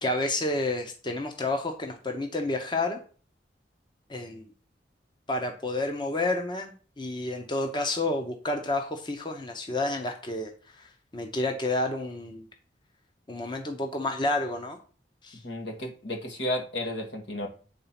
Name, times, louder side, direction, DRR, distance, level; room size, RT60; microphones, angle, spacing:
voice 1, 0.0-3.0 4.1-4.5 5.3-10.5 10.8-12.4 13.3-14.8 15.2-15.4, left 2 dB, 25° left, 4 dB, 0.8 m, -30 dB
voice 2, 15.4-17.5, left 1 dB, 80° left, 2 dB, 1.8 m, -32 dB
8.3 x 4.0 x 5.8 m, 0.40 s
head